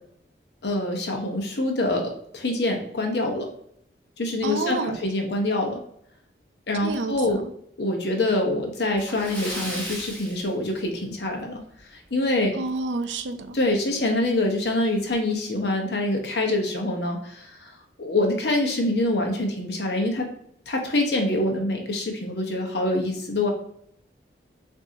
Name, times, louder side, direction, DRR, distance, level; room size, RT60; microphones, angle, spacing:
voice 1, 0.6-3.5 4.2-5.8 6.7-7.4 7.8-11.6 11.9-12.7 13.5-17.7 18.0-20.3 20.7-23.5, left 1 dB, 70° left, 2 dB, 0.9 m, -25 dB
voice 2, 4.4-5.0 6.8-7.5 12.5-13.6, right 3 dB, 85° right, 8 dB, 0.5 m, -29 dB
Splash splatter, 9.0-11.3 11.6-11.8 12.2-12.3 13.8-13.9 14.2-14.3 14.9-15.2, equal, 10° left, 1.0 m, -36 dB
6.0 x 2.7 x 2.7 m, 0.70 s
head